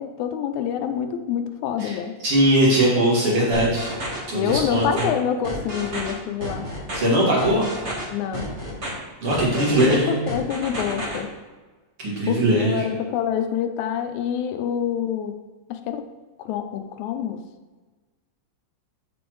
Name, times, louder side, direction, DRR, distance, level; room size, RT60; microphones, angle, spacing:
voice 1, 0.0-2.1 4.3-6.8 8.1-8.5 9.5-11.3 12.3-15.4 15.7-16.1 16.4-17.4, left 9 dB, 85° left, 7 dB, 2.0 m, -27 dB
voice 2, 2.2-3.9 4.3-5.1 6.9-7.7 9.2-10.2 12.0-12.9, right 1 dB, 55° right, -6 dB, 2.9 m, -20 dB
sound 1, 3.5-4.2 4.5-5.0 5.4-6.1 6.4-7.0 7.4-8.0 8.3-8.9 9.3-10.0 10.3-11.2, equal, 35° right, 1.2 m, -31 dB
7.0 x 6.9 x 3.1 m, 1.3 s
omnidirectional pair, 3.3 m